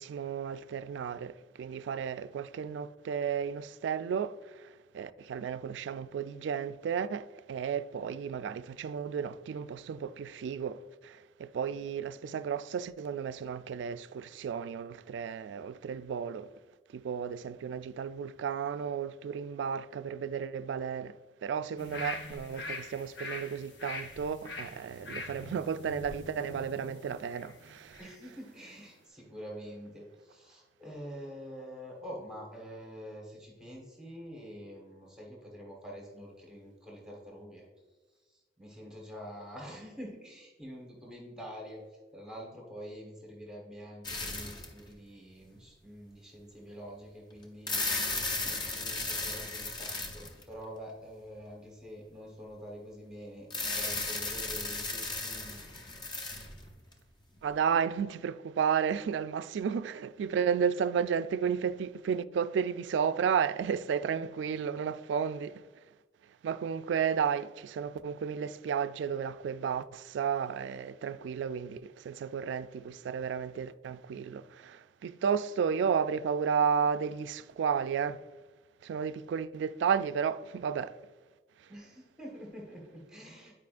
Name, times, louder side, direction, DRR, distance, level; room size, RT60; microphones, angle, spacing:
voice 1, 0.0-4.7 4.9-16.5 16.9-21.1 21.4-28.0 57.4-65.6 66.4-78.2 78.8-80.9, right 7 dB, 90° right, 0.3 m, -33 dB
sound 1, 21.8-28.2 28.6-28.7, left 3 dB, 80° left, 0.9 m, -43 dB
voice 2, 28.0-37.7 38.2-55.7 81.7-83.5, equal, 5° right, 1.2 m, -46 dB
sound 2, 44.0-44.8 45.6-45.7 47.4-50.6 53.5-56.9, left 3 dB, 25° left, 0.7 m, -35 dB
9.5 x 4.8 x 2.5 m
head